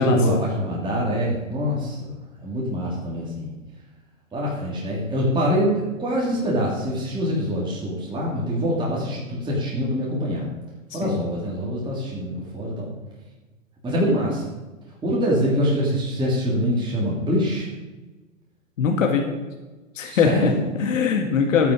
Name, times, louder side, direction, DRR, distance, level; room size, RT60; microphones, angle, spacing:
voice 1, 0.0-2.1 2.4-3.5 4.3-10.5 10.9-12.9 13.8-14.5 15.0-17.7 20.0-20.6, equal, 10° right, -5 dB, 2.9 m, -24 dB
voice 2, 10.9-11.2 18.8-19.3 20.0-21.7, left 5 dB, 75° left, 3 dB, 1.9 m, -21 dB
12.5 x 9.3 x 5.1 m, 1.2 s
hypercardioid pair, 130°, 39 cm